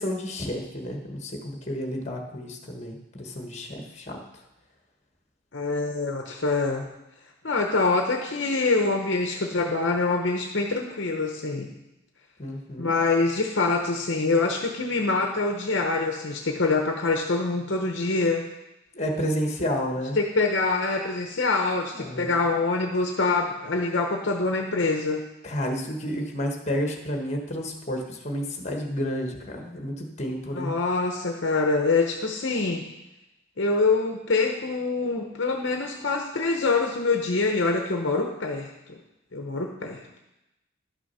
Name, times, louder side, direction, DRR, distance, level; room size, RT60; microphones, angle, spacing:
voice 1, 0.0-4.2 12.4-12.9 18.9-20.2 21.9-22.3 25.4-30.7, equal, 35° left, 2 dB, 1.3 m, -31 dB
voice 2, 5.5-6.9 7.4-11.7 12.8-18.4 20.2-25.2 30.5-32.8 33.6-39.0 39.3-40.0, left 3 dB, 60° left, 3 dB, 0.8 m, -25 dB
11.5 x 6.2 x 5.5 m, 0.94 s
head